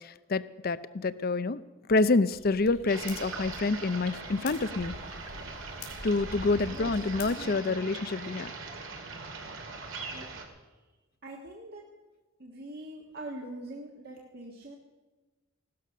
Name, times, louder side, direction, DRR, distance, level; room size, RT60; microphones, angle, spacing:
voice 1, 0.0-1.6 1.9-4.9 6.0-8.5, left 3 dB, 45° left, 15 dB, 0.6 m, -27 dB
sound 1, 2.3-7.3, left 2 dB, 85° left, 4.0 m, -45 dB
sound 2, 2.9-10.5, right 4 dB, 70° right, 2.2 m, -41 dB
voice 2, 6.7-7.8 9.9-10.3 11.2-11.8 12.4-14.8, right 1 dB, 50° right, -1 dB, 1.6 m, -44 dB
17.0 x 12.5 x 6.3 m, 1.2 s
head